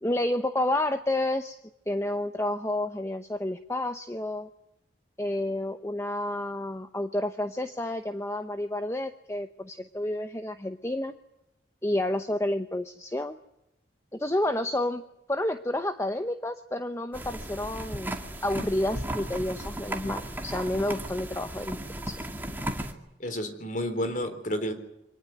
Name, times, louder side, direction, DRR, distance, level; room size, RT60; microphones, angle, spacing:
voice 1, 0.0-1.6 1.9-4.5 5.2-11.1 11.8-13.4 14.1-15.0 15.3-18.1 18.4-22.2, left 1 dB, 15° left, 8 dB, 0.8 m, -30 dB
sound 1, 17.1-22.9, right 1 dB, 10° right, 2.2 m, -35 dB
voice 2, 23.2-24.7, equal, 45° left, 8 dB, 3.9 m, -30 dB
25.0 x 19.0 x 9.1 m, 0.86 s
head